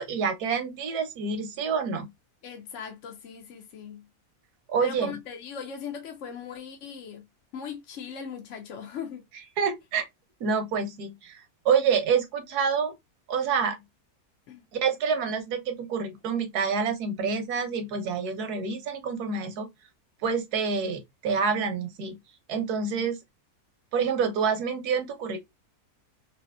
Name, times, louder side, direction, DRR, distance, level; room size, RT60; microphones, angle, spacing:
voice 1, 0.0-2.1 4.7-5.1 9.6-10.0 10.4-12.9 13.3-13.8 14.7-19.7 20.2-22.2 22.5-23.2 23.9-25.4, right 6 dB, 85° right, 1.3 m, -27 dB
voice 2, 2.4-4.1 4.8-7.3 7.5-9.2 14.5-14.7, left 7 dB, 60° left, 0.9 m, -39 dB
3.3 x 2.7 x 2.2 m
omnidirectional pair, 1.6 m